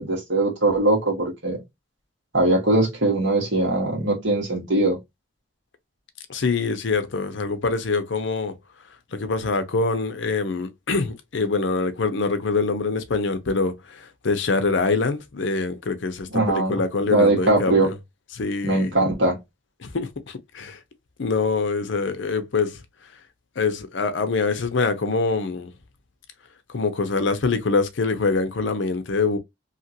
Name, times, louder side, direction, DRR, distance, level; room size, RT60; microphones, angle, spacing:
voice 1, 0.0-1.6 2.3-5.0 16.3-16.8 17.1-17.9 18.6-19.4, right 2 dB, 65° right, 1.4 m, -21 dB
voice 2, 6.3-8.5 9.1-18.0 18.3-18.9 19.8-20.8 21.2-22.8 23.6-25.7 26.7-29.4, left 4 dB, 65° left, 0.6 m, -24 dB
2.8 x 2.5 x 2.7 m
head